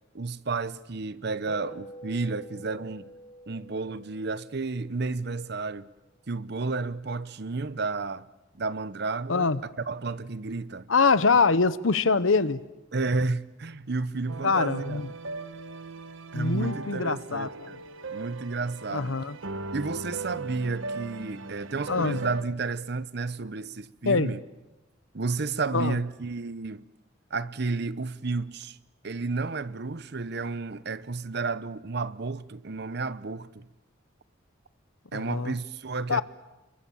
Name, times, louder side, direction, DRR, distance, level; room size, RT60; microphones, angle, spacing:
voice 1, 0.1-3.1 3.5-5.9 6.3-8.3 8.5-10.9 12.9-15.0 16.3-17.8 18.1-19.1 19.7-24.4 25.1-26.8 27.3-28.8 29.0-33.7 35.1-36.2, right 3 dB, 55° right, 0.8 m, -32 dB
sound 1, 1.5-6.1, equal, 25° left, 7.7 m, -47 dB
voice 2, 9.3-9.6 10.9-12.6 14.4-15.1 16.3-17.5 18.9-19.4 21.9-22.2 24.0-24.3 25.7-26.0 35.1-35.5 36.1-36.2, left 4 dB, 85° left, 0.9 m, -24 dB
sound 2, 14.3-22.4, right 3 dB, 80° right, 1.2 m, -38 dB
28.5 x 23.0 x 7.2 m
head